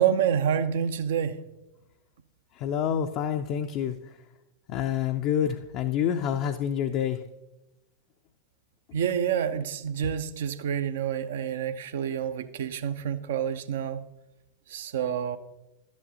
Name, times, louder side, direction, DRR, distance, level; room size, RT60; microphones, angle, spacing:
voice 1, 0.0-1.4 8.9-14.0 14.7-15.4, right 8 dB, 60° right, 11 dB, 0.5 m, -28 dB
voice 2, 2.5-4.0 4.7-7.2, left 9 dB, 40° left, 6 dB, 0.4 m, -27 dB
11.5 x 9.0 x 2.8 m, 0.96 s
figure-of-eight pair, 90°, 0 cm